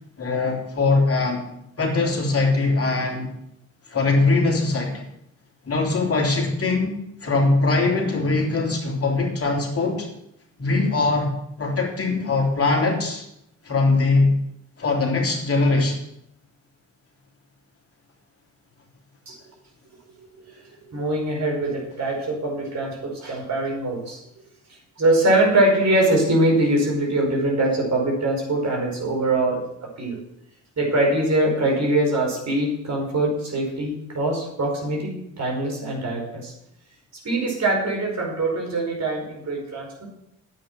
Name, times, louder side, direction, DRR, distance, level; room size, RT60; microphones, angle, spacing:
voice 1, 0.2-1.5 1.8-3.3 3.9-5.0 5.6-7.0 7.2-10.1 10.6-11.3 11.6-13.2 13.6-14.3 14.8-16.0, left 3 dB, 35° left, -1 dB, 3.4 m, -21 dB
voice 2, 20.2-20.6 20.9-24.2 24.7-29.6 30.0-30.2 30.8-36.5 37.2-40.1, right 1 dB, 45° right, -1 dB, 5.1 m, -23 dB
10.5 x 8.5 x 6.0 m, 0.80 s
hypercardioid pair, 45°, 38 cm